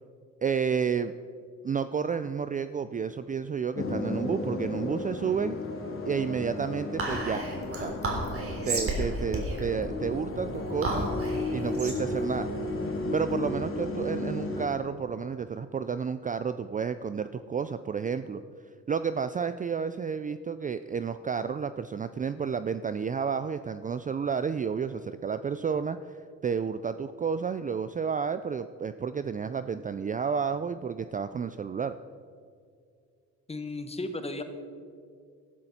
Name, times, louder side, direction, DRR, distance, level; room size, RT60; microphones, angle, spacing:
voice 1, 0.4-1.1 1.6-5.6 6.0-7.5 7.8-7.9 8.6-11.1 11.5-12.5 13.1-18.4 18.9-26.1 26.4-32.0, right 6 dB, 25° right, 12 dB, 0.4 m, -31 dB
sound 1, 3.8-14.7, left 2 dB, 45° left, 2.3 m, -33 dB
Whispering, 7.0-13.6, right 2 dB, 45° right, 3.5 m, -33 dB
voice 2, 33.5-34.4, left 2 dB, 20° left, 8 dB, 1.4 m, -34 dB
15.0 x 12.0 x 4.3 m, 2.2 s
cardioid pair, 90°, 30 cm